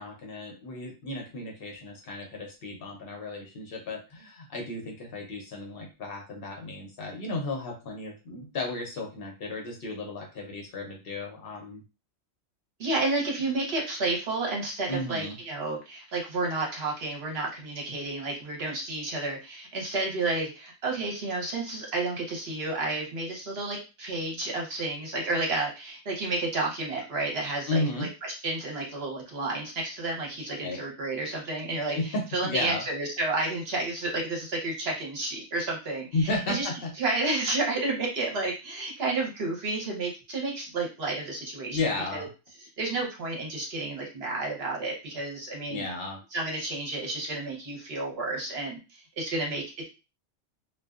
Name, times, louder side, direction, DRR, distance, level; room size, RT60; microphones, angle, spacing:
voice 1, 0.0-11.8 14.9-15.4 27.7-28.1 30.6-30.8 31.9-32.8 36.1-36.9 41.7-42.3 45.7-46.2, left 2 dB, 60° left, 1 dB, 0.8 m, -33 dB
voice 2, 12.8-36.7 37.0-41.8 42.1-42.3 42.8-45.8 46.3-49.9, right 2 dB, 60° right, -1 dB, 1.0 m, -31 dB
2.5 x 2.2 x 2.3 m, 0.29 s
omnidirectional pair, 1.2 m